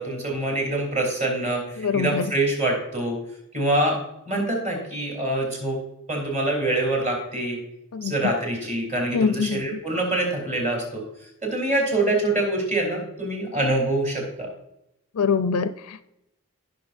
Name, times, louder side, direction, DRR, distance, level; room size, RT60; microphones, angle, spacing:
voice 1, 0.0-3.2 3.5-4.0 4.3-5.8 6.1-7.6 8.0-11.0 11.4-14.5, right 2 dB, 35° right, -1 dB, 3.2 m, -25 dB
voice 2, 1.8-2.3 7.9-8.1 9.1-9.6 15.2-16.0, left 5 dB, 85° left, 12 dB, 0.4 m, -24 dB
16.5 x 5.6 x 2.5 m, 0.84 s
head